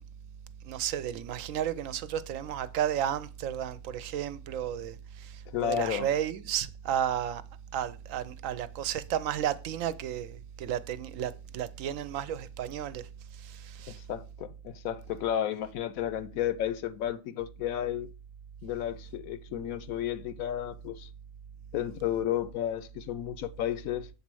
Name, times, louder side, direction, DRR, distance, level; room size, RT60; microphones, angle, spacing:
voice 1, 0.6-7.4 7.7-13.0 13.4-14.0, right 10 dB, 70° right, 1.0 m, -33 dB
voice 2, 5.5-6.1 13.9-18.1 18.6-21.1 21.7-24.1, left 11 dB, 80° left, 1.1 m, -32 dB
7.3 x 4.2 x 6.1 m
omnidirectional pair, 1.5 m